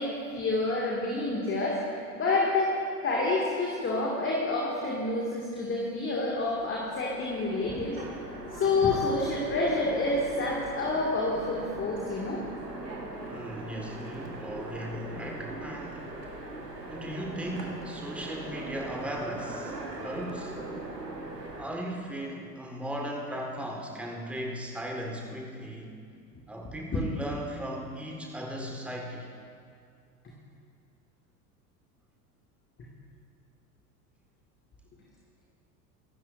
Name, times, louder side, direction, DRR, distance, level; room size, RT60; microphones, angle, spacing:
voice 1, 0.0-2.8 3.0-12.4, left 2 dB, 25° left, -4 dB, 2.2 m, -28 dB
Train, 6.3-21.6, right 2 dB, 85° right, 1.6 m, -40 dB
voice 2, 13.3-16.1 16.9-20.6 21.6-26.0 26.5-29.3, equal, 5° right, 0 dB, 1.7 m, -37 dB
25.0 x 12.5 x 2.6 m, 2.3 s
figure-of-eight pair, 75°, 48 cm